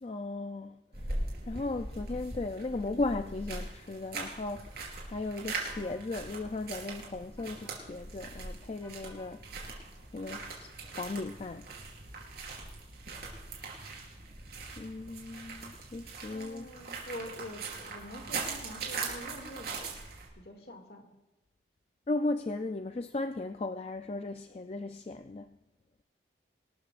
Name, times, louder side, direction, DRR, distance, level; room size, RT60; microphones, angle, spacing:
voice 1, 0.0-9.4 10.1-11.7 14.8-16.7 22.1-25.6, left 2 dB, 35° left, 0.4 m, -36 dB
sound 1, 0.9-20.3, right 3 dB, 55° right, 4.0 m, -41 dB
sound 2, 5.6-6.0 7.4-7.8 8.8-9.4, left 1 dB, 15° left, 3.1 m, -55 dB
voice 2, 16.3-19.9 20.3-21.1, left 1 dB, 55° left, 2.2 m, -45 dB
25.0 x 13.0 x 2.5 m
head